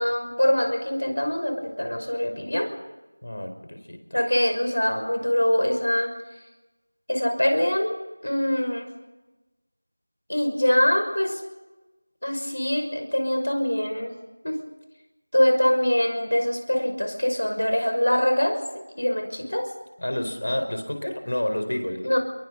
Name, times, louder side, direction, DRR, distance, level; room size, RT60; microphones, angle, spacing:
voice 1, 0.0-2.7 4.1-6.1 7.1-8.9 10.3-11.4 12.2-14.1 14.4-14.6 15.3-18.6 19.0-19.7 22.0-22.2, left 1 dB, 80° left, 5 dB, 6.0 m, -23 dB
voice 2, 3.2-4.0 20.0-22.1, left 1 dB, 60° left, 7 dB, 4.6 m, -29 dB
29.5 x 23.0 x 4.1 m, 1.1 s
figure-of-eight pair, 175°, 0 cm